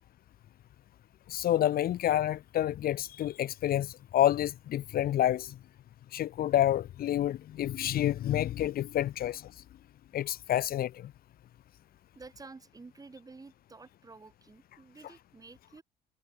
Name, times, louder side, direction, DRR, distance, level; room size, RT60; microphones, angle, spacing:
voice 1, 1.3-5.5 6.1-9.4 10.1-11.1, left 12 dB, 60° left, 1.7 m, -28 dB
voice 2, 12.1-15.8, right 3 dB, 20° right, 6.5 m, -51 dB
cardioid pair, 110°, 17 cm